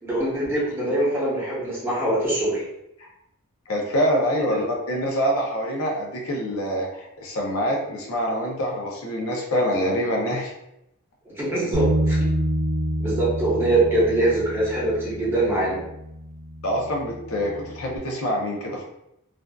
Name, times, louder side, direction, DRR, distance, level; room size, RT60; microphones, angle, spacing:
voice 1, 0.0-2.6 4.5-4.7 11.4-12.2 13.0-15.8, right 1 dB, 10° right, -9 dB, 0.9 m, -23 dB
voice 2, 3.7-10.5 16.6-18.8, equal, 70° left, -1 dB, 0.6 m, -25 dB
Bass guitar, 11.7-18.0, right 1 dB, 75° right, 0.3 m, -28 dB
2.5 x 2.3 x 2.2 m, 0.83 s
head